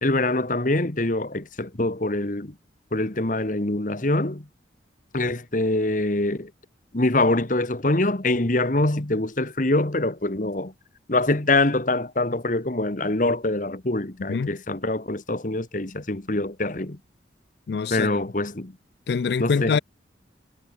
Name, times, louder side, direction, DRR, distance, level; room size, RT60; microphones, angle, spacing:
voice 1, 0.0-2.5 2.9-4.5 5.1-6.5 6.9-10.7 11.1-17.0 17.9-18.7 19.4-19.8, left 2 dB, 45° left, 1.5 m, -24 dB
voice 2, 17.7-18.2 19.1-19.8, left 5 dB, 60° left, 0.4 m, -24 dB
head